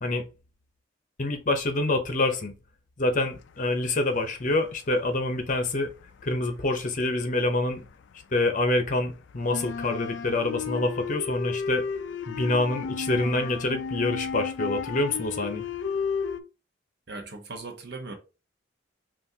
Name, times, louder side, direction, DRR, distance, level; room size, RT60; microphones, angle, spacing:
voice 1, 1.2-2.5 3.0-5.9 6.2-7.9 8.3-11.8 12.3-15.7, left 2 dB, 40° left, 0.7 m, -26 dB
sound 1, 3.7-4.6 5.0-7.9 8.2-16.4, left 6 dB, 65° left, 0.3 m, -33 dB
voice 2, 17.1-18.2, right 3 dB, 55° right, 0.9 m, -38 dB
5.7 x 2.5 x 2.8 m
head